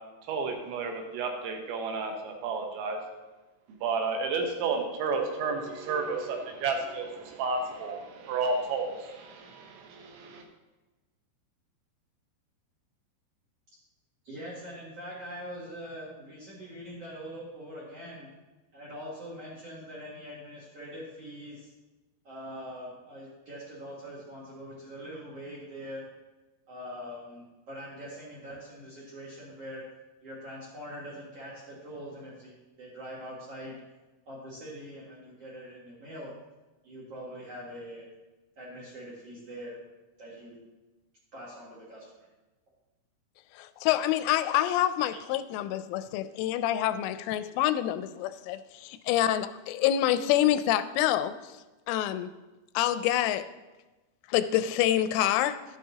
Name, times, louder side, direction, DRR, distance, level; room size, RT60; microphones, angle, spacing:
voice 1, 0.3-3.0 3.8-10.4, right 4 dB, 75° right, 2 dB, 3.3 m, -32 dB
voice 2, 14.2-18.3 18.7-21.7 22.2-26.1 26.7-29.8 30.2-33.8 34.3-36.3 36.8-38.0 38.6-39.8 40.2-40.6 41.3-42.3, equal, 50° right, -5 dB, 1.9 m, -43 dB
voice 3, 43.6-51.6 51.9-52.3 52.7-53.5 54.3-55.6, left 12 dB, 90° left, 12 dB, 3.1 m, -27 dB
12.0 x 9.3 x 2.8 m, 1.1 s
omnidirectional pair, 5.6 m